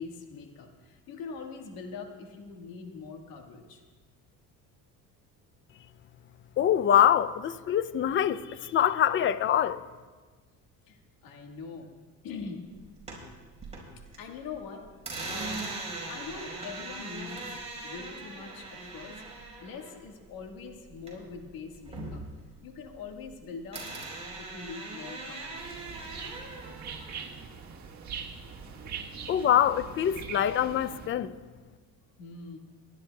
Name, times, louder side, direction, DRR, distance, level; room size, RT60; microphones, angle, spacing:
voice 1, 0.0-3.8 10.8-11.9 12.2-12.6 14.2-14.9 15.3-15.6 16.1-22.2 22.6-23.8 24.4-25.8 32.2-32.6, left 5 dB, 80° left, 1.7 m, -43 dB
voice 2, 6.6-9.8 29.3-31.3, left 10 dB, 35° left, 0.5 m, -24 dB
sound 1, 12.8-14.2 14.5-21.4 21.7-23.4 23.7-27.2, right 3 dB, 20° right, 4.1 m, -40 dB
sound 2, 25.5-31.1, right 6 dB, 50° right, 1.6 m, -42 dB
26.0 x 11.5 x 2.3 m
cardioid pair, 115°, 35 cm